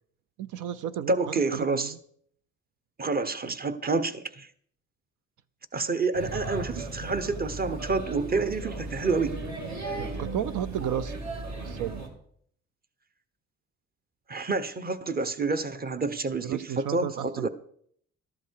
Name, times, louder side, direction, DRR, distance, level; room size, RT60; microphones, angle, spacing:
voice 1, 0.4-2.0 9.9-11.2 11.6-12.0 16.4-17.5, right 10 dB, 80° right, 0.6 m, -33 dB
voice 2, 1.1-1.9 3.0-4.5 5.7-9.4 14.3-17.5, right 3 dB, 30° right, 1.1 m, -28 dB
Male speech man speaking / Child speech kid speaking / Chatter, 6.1-12.1, right 2 dB, 65° right, 3.0 m, -36 dB
13.5 x 11.5 x 4.7 m
cardioid pair, 90°, 30 cm